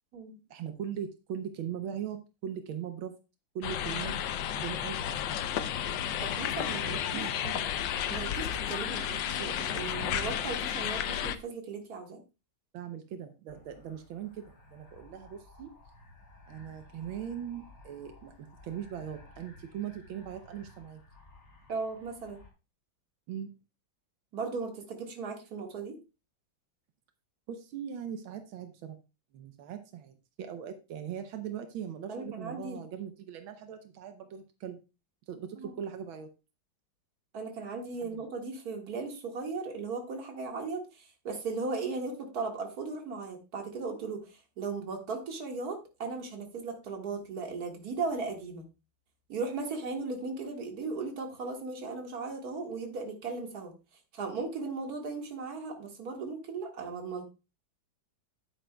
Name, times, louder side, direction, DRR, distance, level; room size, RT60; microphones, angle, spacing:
voice 1, 0.5-3.1 3.5-4.2 4.6-5.2 6.8-7.7 12.7-15.7 16.5-21.0 23.3-23.5 27.5-29.0 29.3-34.8 35.3-36.3 38.0-38.2, right 8 dB, 85° right, 7 dB, 1.6 m, -40 dB
sound 1, 3.6-11.4, left 10 dB, 75° left, 1.3 m, -32 dB
voice 2, 6.2-7.3 8.1-12.2 21.7-22.4 24.3-25.9 32.1-32.8 35.6-35.8 37.3-44.2 44.6-48.7 49.3-53.7 54.1-57.2, right 4 dB, 50° right, 2 dB, 2.2 m, -37 dB
sound 2, 13.5-22.5, left 2 dB, 45° left, 3.3 m, -55 dB
10.0 x 9.0 x 2.3 m, 0.29 s
omnidirectional pair, 2.1 m